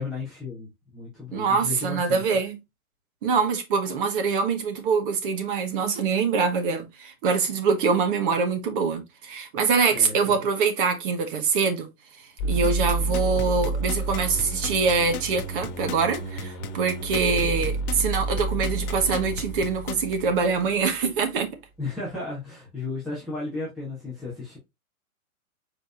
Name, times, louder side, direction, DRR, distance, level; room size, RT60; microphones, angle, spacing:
voice 1, 0.0-2.2 9.9-10.4 17.6-17.7 21.8-24.6, left 3 dB, ahead, 0.4 m, -34 dB
voice 2, 1.3-2.6 3.2-11.9 12.4-21.5, right 5 dB, 35° right, 1.2 m, -24 dB
sound 1, 12.4-21.2, right 2 dB, 30° left, 1.6 m, -30 dB
sound 2, 12.6-20.1 20.6-20.7, left 9 dB, 80° left, 0.7 m, -36 dB
4.9 x 4.3 x 2.4 m
hypercardioid pair, 155°, 43 cm